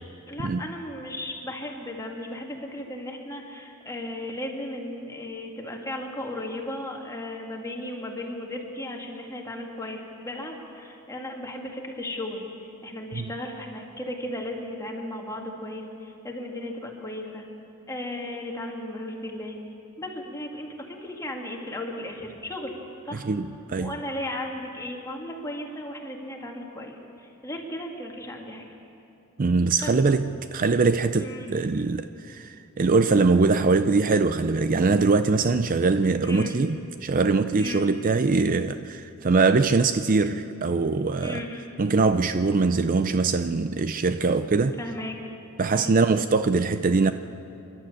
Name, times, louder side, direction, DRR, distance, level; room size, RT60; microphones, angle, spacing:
voice 1, 0.3-17.4 17.9-19.6 20.0-22.7 23.0-23.3 23.8-28.7 29.8-29.9 31.1-31.5 36.2-36.6 37.6-37.9 41.2-41.7 44.8-45.2 45.7-46.0, left 1 dB, 15° left, 2.2 m, -35 dB
voice 2, 23.2-24.0 29.4-41.4 41.8-44.8 45.6-47.1, right 4 dB, 40° right, 0.5 m, -22 dB
28.0 x 12.0 x 8.6 m
head